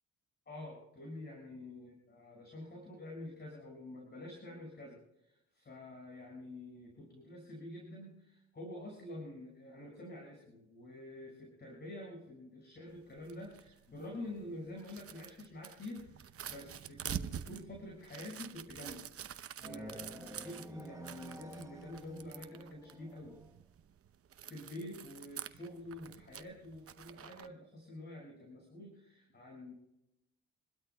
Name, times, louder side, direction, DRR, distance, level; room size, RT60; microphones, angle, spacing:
voice 1, 0.5-19.0 19.3-23.4 24.4-29.7, left 1 dB, 35° left, -1 dB, 6.0 m, -48 dB
sound 1, 12.9-27.5, right 9 dB, 50° right, 0.8 m, -47 dB
sound 2, 19.6-23.5, right 2 dB, 10° right, 1.4 m, -50 dB
28.0 x 12.5 x 2.3 m, 0.85 s
cardioid pair, 90°, 30 cm